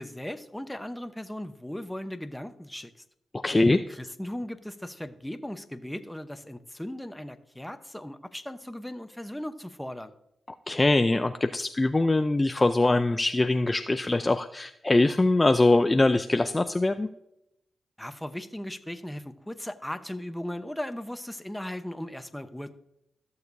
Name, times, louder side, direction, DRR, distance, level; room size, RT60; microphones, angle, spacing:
voice 1, 0.0-2.9 3.7-10.1 18.0-22.7, left 1 dB, 5° left, 9 dB, 0.9 m, -37 dB
voice 2, 3.4-3.8 10.7-17.1, left 2 dB, 25° left, 8 dB, 0.5 m, -23 dB
14.5 x 6.6 x 2.7 m, 0.82 s
cardioid pair, 55°, 0 cm